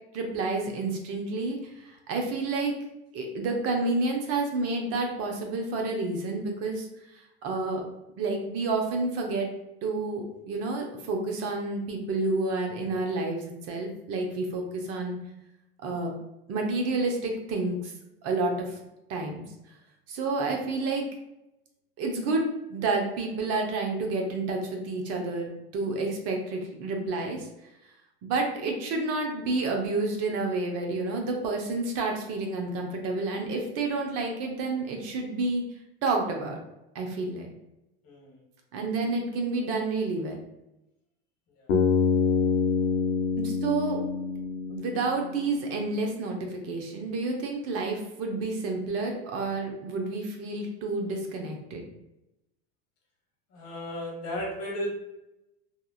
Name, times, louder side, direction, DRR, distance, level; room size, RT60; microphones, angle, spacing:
voice 1, 0.1-2.8 3.1-6.9 7.1-7.8 8.2-9.5 9.8-15.2 15.8-16.1 16.5-17.9 18.2-18.8 19.1-19.4 20.1-21.1 22.0-27.5 28.2-35.6 36.0-36.6 36.9-37.5 38.7-40.4 43.4-44.0 44.7-51.8, right 3 dB, 50° right, 2 dB, 0.6 m, -29 dB
voice 2, 38.0-38.4 41.6-41.7 53.5-54.9, equal, 50° left, -1 dB, 1.1 m, -35 dB
Bass guitar, 41.7-45.8, left 5 dB, 90° left, 0.5 m, -26 dB
2.9 x 2.4 x 2.3 m, 0.90 s
hypercardioid pair, 90°, 32 cm